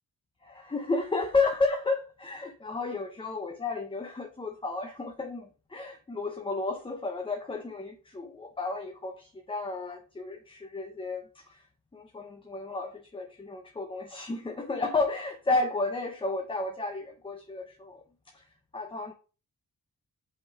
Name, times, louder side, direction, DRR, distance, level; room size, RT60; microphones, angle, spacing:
voice 1, 0.4-11.7 11.9-18.0 18.3-18.5 18.7-19.1, left 3 dB, 15° left, 0.6 m, -32 dB
5.4 x 3.9 x 4.6 m
wide cardioid pair, 140°, 34 cm